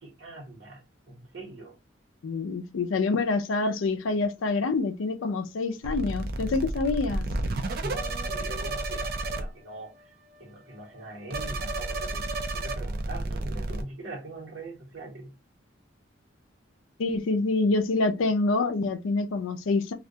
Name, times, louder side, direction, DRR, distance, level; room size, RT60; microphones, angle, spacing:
voice 1, 0.0-1.8 7.8-10.1 10.4-15.3, right 2 dB, 70° right, 1.1 m, -42 dB
voice 2, 2.2-7.3 17.0-19.9, left 3 dB, 80° left, 0.4 m, -26 dB
sound 1, 5.8-9.5 9.7-10.0 10.3-10.4 10.7-11.1 11.3-13.8, right 2 dB, 50° right, 0.4 m, -31 dB
2.4 x 2.2 x 2.7 m
head